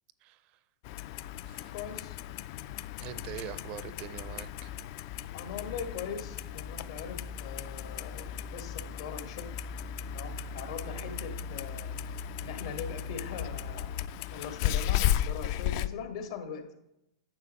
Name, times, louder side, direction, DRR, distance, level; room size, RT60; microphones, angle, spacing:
voice 1, 0.2-0.6 1.5-1.7 3.0-4.7, right 11 dB, 45° right, 16 dB, 0.4 m, -43 dB
Clock, 0.8-15.9, left 10 dB, 55° left, 0.3 m, -35 dB
voice 2, 1.7-2.2 5.3-9.5 10.1-11.9 12.4-13.9 14.3-16.6, left 6 dB, 70° left, 6 dB, 1.5 m, -41 dB
9.8 x 6.9 x 3.1 m, 0.86 s
hypercardioid pair, 115°, 3 cm